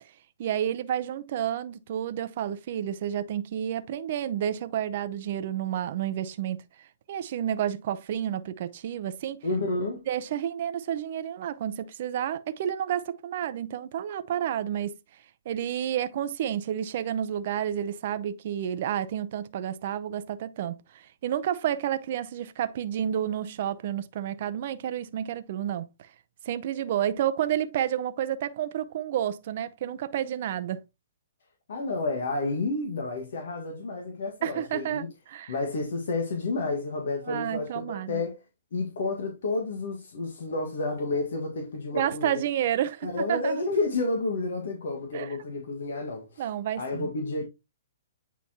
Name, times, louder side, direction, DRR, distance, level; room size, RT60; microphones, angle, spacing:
voice 1, 0.4-9.4 10.1-15.0 15.5-25.9 26.4-30.8 34.4-35.5 37.2-38.2 41.9-43.6 45.1-45.3 46.4-47.1, right 10 dB, 50° right, 0.7 m, -30 dB
voice 2, 9.4-10.0 31.7-35.1 35.5-38.4 38.7-42.3 43.0-46.4 46.8-47.4, left 2 dB, 65° left, 1.6 m, -30 dB
9.2 x 4.1 x 2.9 m
hypercardioid pair, 125°, 0 cm